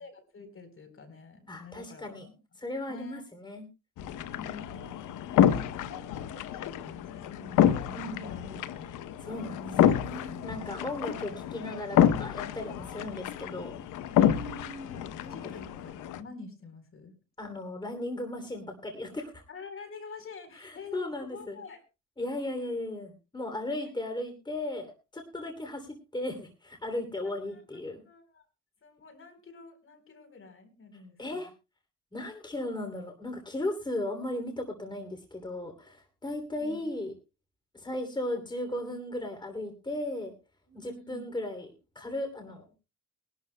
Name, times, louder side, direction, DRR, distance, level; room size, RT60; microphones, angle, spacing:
voice 1, 0.0-2.4 2.9-3.2 4.4-5.0 5.4-8.5 9.6-9.9 10.3-10.5 10.9-11.2 14.2-17.1 19.5-21.8 27.2-27.6 28.0-28.4 28.8-31.4 36.5-36.8 40.7-41.3, left 3 dB, 45° left, 8 dB, 4.0 m, -47 dB
voice 2, 1.5-2.3 2.6-3.6 7.9-8.6 9.2-13.8 17.4-19.4 20.5-21.6 22.2-28.0 31.2-31.5 32.1-37.1 37.7-40.3 40.7-42.6, left 1 dB, 15° left, 5 dB, 3.0 m, -36 dB
sound 1, 4.0-16.2, left 10 dB, 85° left, 0.9 m, -28 dB
22.5 x 12.0 x 2.2 m, 0.28 s
cardioid pair, 90°, 30 cm